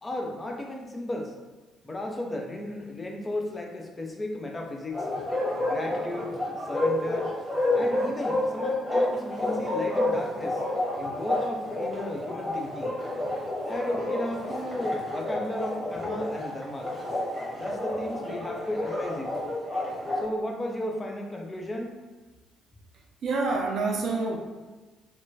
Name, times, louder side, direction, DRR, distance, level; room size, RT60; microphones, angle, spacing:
voice 1, 0.0-1.3 1.8-5.1 5.6-7.3 7.7-10.6 11.0-12.9 13.7-16.9 17.5-19.3 20.2-22.0, left 1 dB, 20° left, 1 dB, 0.5 m, -34 dB
Bark, 4.9-20.3, left 1 dB, ahead, 1.4 m, -30 dB
voice 2, 22.9-24.4, right 3 dB, 50° right, 0 dB, 0.4 m, -28 dB
2.8 x 2.2 x 2.8 m, 1.3 s
figure-of-eight pair, 45°, 0 cm